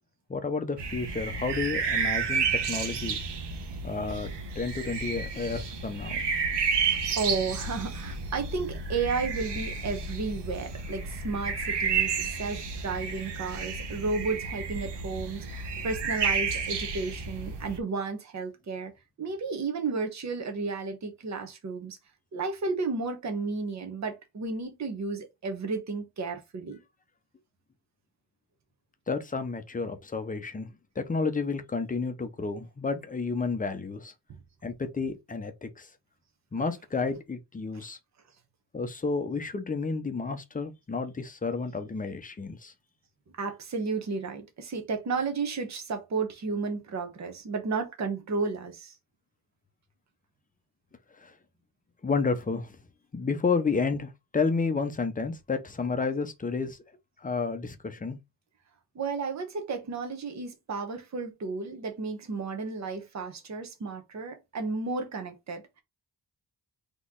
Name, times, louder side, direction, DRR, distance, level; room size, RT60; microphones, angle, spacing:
voice 1, 0.3-3.2 3.8-4.3 4.6-6.2 15.8-15.9 29.1-30.7 31.0-34.1 34.6-35.9 36.5-38.0 38.7-42.7 51.2-51.3 52.0-52.8 53.1-56.8 57.2-58.2, left 4 dB, 20° left, 0.6 m, -31 dB
sound 1, 0.8-17.8, right 5 dB, 80° right, 1.1 m, -31 dB
voice 2, 7.1-18.9 19.2-22.0 22.3-26.8 37.7-37.9 43.4-48.9 58.9-65.6, right 4 dB, 40° right, 1.1 m, -33 dB
4.2 x 3.0 x 3.7 m
wide cardioid pair, 165°, 41 cm